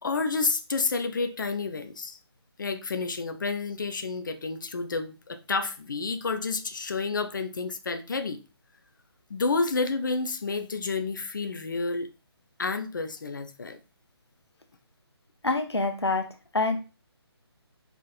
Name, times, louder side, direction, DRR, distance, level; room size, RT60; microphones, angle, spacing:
voice 1, 0.0-2.2 2.6-8.4 9.3-12.1 12.6-13.8, left 4 dB, 45° left, 0.8 m, -30 dB
voice 2, 15.4-16.3 16.5-16.8, left 3 dB, 70° left, 1.4 m, -25 dB
5.2 x 4.6 x 4.4 m
figure-of-eight pair, 145°, 14 cm